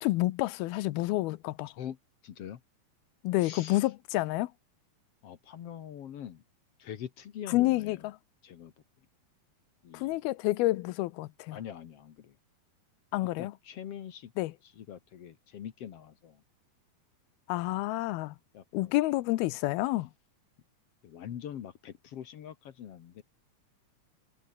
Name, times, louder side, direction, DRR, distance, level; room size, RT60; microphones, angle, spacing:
voice 1, 0.0-1.7 3.2-4.5 7.5-8.1 9.9-11.6 13.1-13.5 14.4-14.5 17.5-18.4 18.7-20.1, left 18 dB, 80° left, 2.6 m, -29 dB
voice 2, 2.2-2.6 3.4-3.9 5.2-6.4 6.8-8.1 8.4-8.7 9.8-10.1 11.5-12.4 13.4-14.3 14.6-16.4 18.5-18.9 21.0-23.2, left 9 dB, 60° left, 1.6 m, -43 dB
omnidirectional pair, 4.5 m